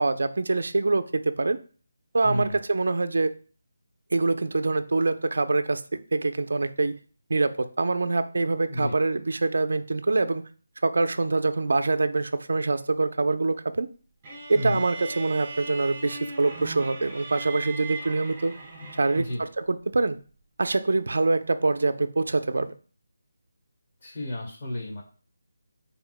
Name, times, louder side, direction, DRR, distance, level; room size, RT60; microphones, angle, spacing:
voice 1, 0.0-1.6 2.1-3.3 4.1-5.8 6.1-6.9 7.3-10.4 10.8-13.9 14.5-18.5 19.0-20.2 20.6-22.7, right 3 dB, 70° right, 9 dB, 0.6 m, -25 dB
voice 2, 2.2-2.6 8.7-9.0 14.5-14.8 18.8-19.4 24.0-25.0, left 1 dB, 35° left, -2 dB, 2.2 m, -32 dB
sound 1, 14.2-19.5, right 3 dB, 15° right, 2.7 m, -39 dB
10.5 x 4.3 x 2.2 m, 0.40 s
figure-of-eight pair, 170°, 0 cm